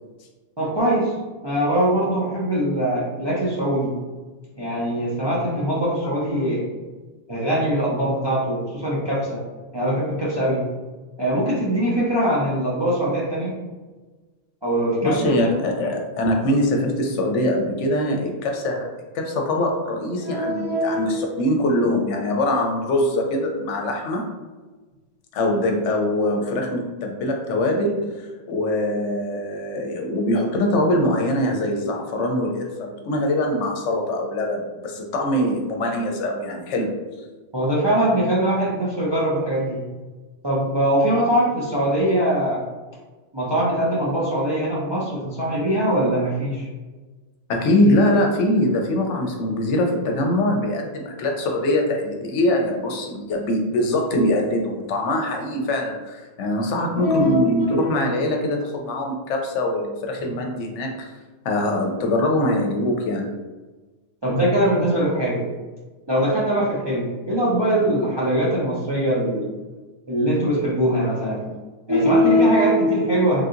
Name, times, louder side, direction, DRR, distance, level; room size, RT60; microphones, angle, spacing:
voice 1, 0.6-1.1 1.4-3.9 4.5-6.7 7.3-9.4 9.7-10.6 11.2-13.5 14.6-15.5 20.2-21.2 37.5-39.9 40.4-42.6 43.3-46.7 57.0-57.9 64.2-65.5 66.1-69.5 70.1-71.5 71.9-73.4, equal, 35° right, -6 dB, 0.4 m, -22 dB
voice 2, 15.0-18.9 19.1-24.3 25.3-37.0 41.2-41.3 47.5-61.1 61.4-63.3, left 1 dB, 75° left, 2 dB, 0.9 m, -23 dB
3.3 x 2.7 x 2.4 m, 1.3 s
omnidirectional pair, 1.3 m